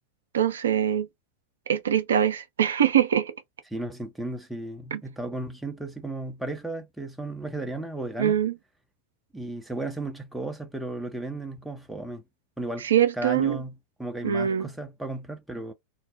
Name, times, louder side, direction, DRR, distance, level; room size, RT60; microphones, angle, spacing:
voice 1, 0.3-1.1 1.7-3.3 4.9-5.0 8.2-8.5 12.8-13.6 14.2-14.7, right 9 dB, 65° right, 0.4 m, -23 dB
voice 2, 3.7-8.4 9.3-12.2 12.6-12.9 13.1-15.7, right 2 dB, 5° right, 0.5 m, -34 dB
2.6 x 2.0 x 2.4 m
figure-of-eight pair, 90°, 0 cm